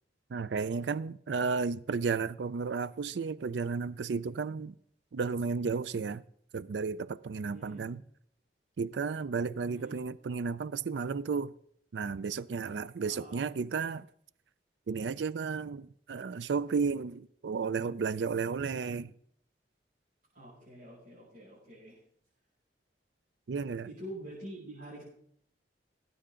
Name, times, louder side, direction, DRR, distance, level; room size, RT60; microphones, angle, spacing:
voice 1, 0.3-4.8 5.1-6.2 6.5-8.0 8.8-11.5 11.9-14.1 14.9-19.1 23.5-23.9, right 5 dB, 75° right, 0.4 m, -33 dB
voice 2, 7.5-7.9 9.6-10.0 13.1-13.4 20.3-22.0 23.8-25.0, right 1 dB, 50° right, 6.8 m, -46 dB
20.0 x 9.4 x 3.8 m
head